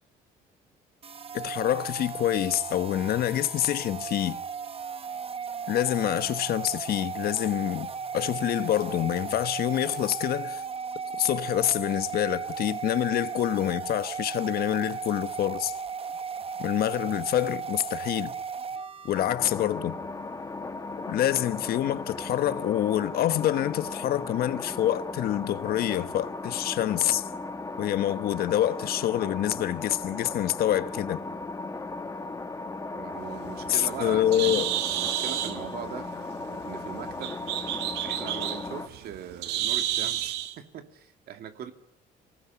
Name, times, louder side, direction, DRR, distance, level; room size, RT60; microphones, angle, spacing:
sound 1, 1.0-19.2, right 6 dB, 35° right, 1.0 m, -36 dB
voice 1, 1.3-4.4 5.7-7.9 8.1-10.6 11.2-15.7 16.6-18.3 19.0-20.0 21.1-27.3 27.8-31.2 33.7-34.7, left 12 dB, 65° left, 1.3 m, -26 dB
sound 2, 19.1-38.9, left 3 dB, 20° left, 1.8 m, -37 dB
voice 2, 32.9-34.3 34.9-36.1 36.6-37.4 38.0-41.7, right 9 dB, 65° right, 2.5 m, -40 dB
Bird, 33.3-40.5, right 13 dB, 85° right, 1.7 m, -31 dB
26.0 x 19.0 x 9.9 m
cardioid pair, 110°, 17 cm